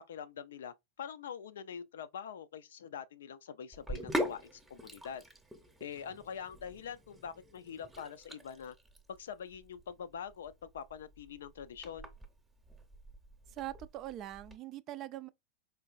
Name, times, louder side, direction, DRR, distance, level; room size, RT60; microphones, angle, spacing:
voice 1, 0.0-5.2 5.8-8.8 9.2-12.1, left 7 dB, 60° left, 0.4 m, -44 dB
Sink (filling or washing), 3.7-14.6, equal, 10° right, 0.8 m, -43 dB
voice 2, 13.5-15.3, right 14 dB, 35° right, 0.3 m, -42 dB
4.4 x 3.0 x 2.4 m
figure-of-eight pair, 90°, 0 cm